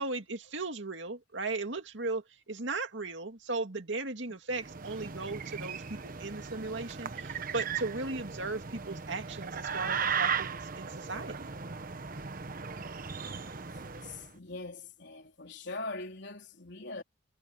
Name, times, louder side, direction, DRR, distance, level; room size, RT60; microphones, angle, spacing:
voice 1, 0.0-11.5, right 3 dB, 70° right, 2.4 m, -37 dB
sound 1, 4.5-14.3, right 6 dB, 45° right, 1.1 m, -37 dB
voice 2, 13.4-17.0, left 2 dB, 60° left, 4.1 m, -42 dB
head